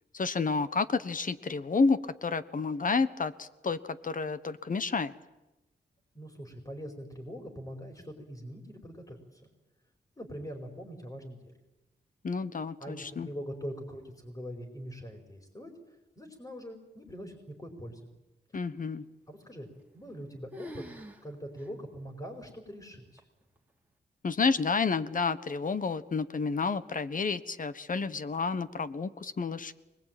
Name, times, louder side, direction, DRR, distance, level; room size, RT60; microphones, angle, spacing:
voice 1, 0.1-5.1 12.2-13.3 18.5-19.0 24.2-29.7, left 4 dB, 50° left, 14 dB, 1.3 m, -30 dB
voice 2, 6.1-9.4 10.2-11.5 12.8-15.7 16.2-18.0 19.3-23.2, equal, 20° left, 3 dB, 4.8 m, -43 dB
sound 1, 19.7-20.2 20.5-21.2 21.6-21.7 22.4-22.5 23.2-23.6, left 1 dB, 10° right, 3.3 m, -46 dB
25.0 x 21.0 x 9.1 m, 1.0 s
cardioid pair, 80°, 18 cm